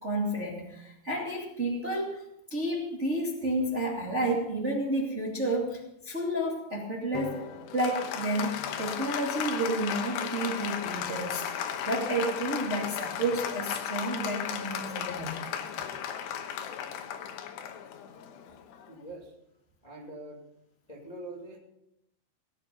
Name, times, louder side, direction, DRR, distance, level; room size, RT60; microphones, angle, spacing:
voice 1, 0.0-2.2 2.5-7.4 7.7-11.5 11.8-15.3, right 1 dB, 35° right, -2 dB, 1.1 m, -31 dB
Applause, 7.1-19.0, left 9 dB, 75° left, 2.8 m, -35 dB
voice 2, 18.9-19.3 19.8-20.4 20.9-21.6, right 2 dB, 30° left, -2 dB, 0.6 m, -43 dB
19.0 x 10.5 x 5.4 m, 0.80 s
omnidirectional pair, 5.5 m